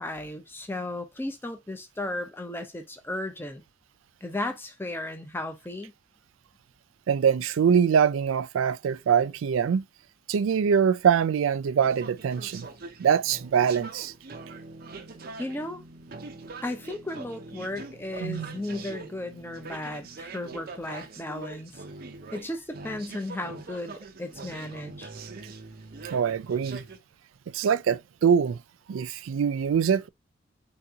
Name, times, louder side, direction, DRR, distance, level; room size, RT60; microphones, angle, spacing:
voice 1, 0.0-3.6 4.2-5.9 15.4-15.8 16.6-21.8 22.3-25.1, left 1 dB, 10° left, 0.6 m, -35 dB
voice 2, 7.1-9.8 10.3-12.7 13.0-14.1 18.2-18.6 26.1-26.8 27.5-28.6 28.9-30.1, right 7 dB, 85° right, 0.3 m, -23 dB
sound 1, 11.8-27.0, right 3 dB, 50° right, 0.6 m, -43 dB
3.9 x 2.9 x 3.5 m
head